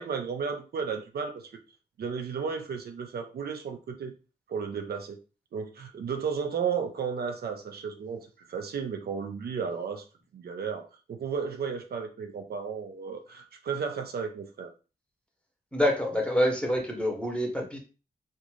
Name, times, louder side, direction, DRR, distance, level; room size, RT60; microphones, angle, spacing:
voice 1, 0.0-1.5 2.0-4.1 4.5-5.2 5.5-10.0 10.3-14.7, right 6 dB, 75° right, 5 dB, 0.4 m, -33 dB
voice 2, 15.7-17.8, equal, 5° left, 2 dB, 0.8 m, -26 dB
2.5 x 2.2 x 3.1 m, 0.33 s
wide cardioid pair, 75°, 16 cm